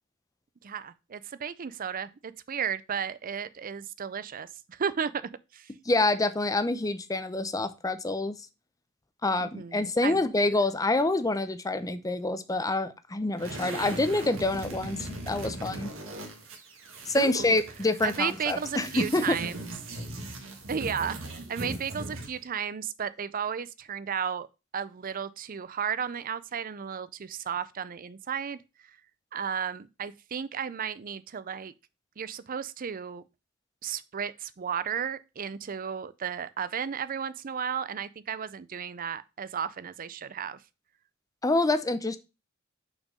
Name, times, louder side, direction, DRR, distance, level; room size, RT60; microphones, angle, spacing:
voice 1, 0.6-5.2 5.5-5.7 9.4-10.2 17.1-17.6 18.0-19.6 20.7-21.2 21.5-24.5 24.7-28.6 29.3-31.7 32.2-33.2 33.8-40.6, right 7 dB, 45° right, 0.5 m, -34 dB
voice 2, 5.9-8.4 9.2-15.9 17.1-19.4 41.4-42.2, left 2 dB, 15° left, 0.6 m, -27 dB
sound 1, 13.4-22.4, right 2 dB, 75° right, 1.7 m, -39 dB
5.8 x 4.5 x 5.0 m
head